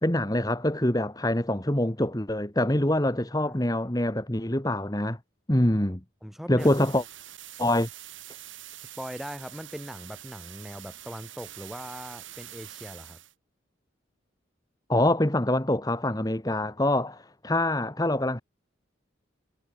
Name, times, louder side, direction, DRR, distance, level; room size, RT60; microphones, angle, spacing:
voice 1, 0.0-5.2 5.5-6.0 6.5-7.0 7.6-7.9 14.9-18.4, left 1 dB, 20° left, 1.7 m, -25 dB
voice 2, 3.1-3.6 6.2-6.9 8.8-13.2, equal, ahead, 5.4 m, -40 dB
sound 1, 6.6-13.3, right 12 dB, 85° right, 6.6 m, -45 dB
head